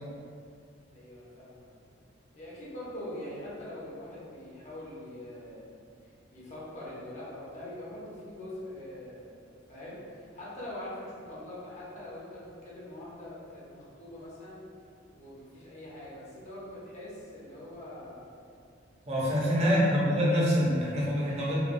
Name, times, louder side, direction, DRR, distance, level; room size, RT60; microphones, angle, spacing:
voice 1, 0.9-1.7 2.3-5.7 6.0-14.6 15.1-18.3 19.1-19.5, left 1 dB, 40° left, -8 dB, 0.8 m, -43 dB
voice 2, 19.1-21.6, equal, 35° right, -7 dB, 0.7 m, -25 dB
3.6 x 2.2 x 2.5 m, 2.3 s
head